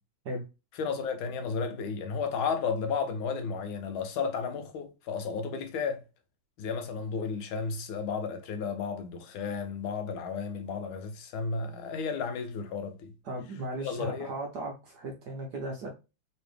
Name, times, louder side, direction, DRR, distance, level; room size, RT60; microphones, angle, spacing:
voice 1, 0.8-6.0 6.6-13.1 13.8-14.3, left 5 dB, 75° left, 1.3 m, -33 dB
voice 2, 13.2-15.9, right 1 dB, 65° right, 1.1 m, -37 dB
3.4 x 3.0 x 3.2 m
omnidirectional pair, 2.4 m